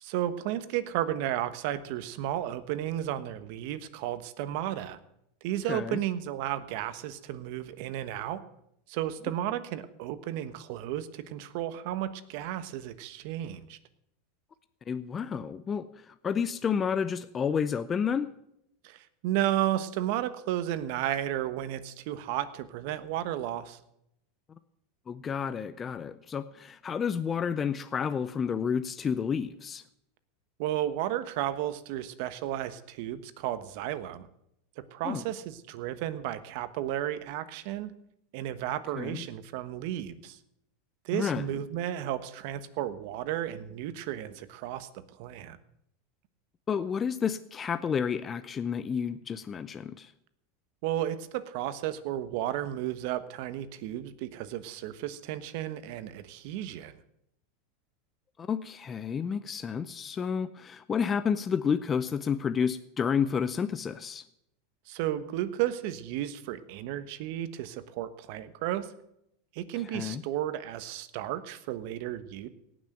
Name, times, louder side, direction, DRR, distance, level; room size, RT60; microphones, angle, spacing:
voice 1, 0.0-5.0 5.4-8.4 8.9-13.8 18.8-23.8 30.6-34.3 34.8-37.9 38.3-40.4 41.0-44.9 45.2-45.6 50.8-57.0 64.9-68.9 69.5-72.5, right 12 dB, 60° right, 13 dB, 1.2 m, -33 dB
voice 2, 5.7-6.0 14.9-18.3 25.1-29.8 35.0-35.2 39.0-39.2 41.1-41.5 46.7-50.1 58.4-64.2 69.8-70.2, left 7 dB, 25° left, 12 dB, 0.6 m, -30 dB
17.5 x 6.3 x 9.1 m, 0.78 s
supercardioid pair, 120°, 0 cm